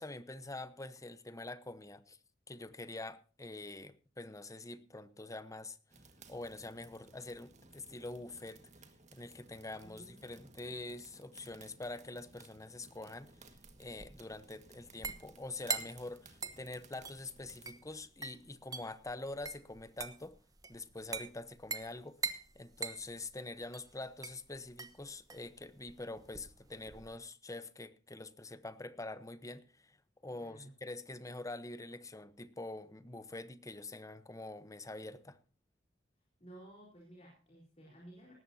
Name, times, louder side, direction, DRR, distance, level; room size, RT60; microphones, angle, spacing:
voice 1, 0.0-2.2 2.5-5.8 6.3-8.7 9.1-13.3 13.8-20.4 20.7-22.2 22.5-30.0 30.2-35.4, left 2 dB, 20° left, 1.0 m, -45 dB
sound 1, 5.9-17.8, right 3 dB, 40° right, 1.8 m, -60 dB
voice 2, 9.8-10.5 30.3-30.7 36.4-38.3, right 1 dB, 35° left, 4.3 m, -55 dB
sound 2, 13.2-27.2, right 4 dB, 20° right, 1.1 m, -44 dB
18.5 x 14.0 x 2.8 m
head